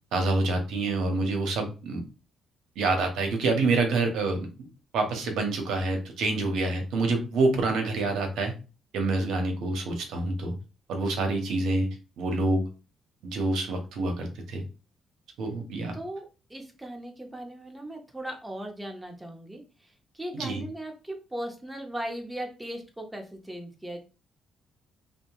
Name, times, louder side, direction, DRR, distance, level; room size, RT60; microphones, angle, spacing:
voice 1, 0.1-2.0 2.8-4.7 4.9-8.5 8.9-10.5 10.9-12.7 13.2-14.6 15.4-16.0 20.4-20.6, right 2 dB, 85° right, 4 dB, 0.7 m, -27 dB
voice 2, 15.9-24.0, right 1 dB, 10° right, 2 dB, 0.7 m, -38 dB
2.6 x 2.1 x 2.9 m, 0.32 s
cardioid pair, 90°, 0 cm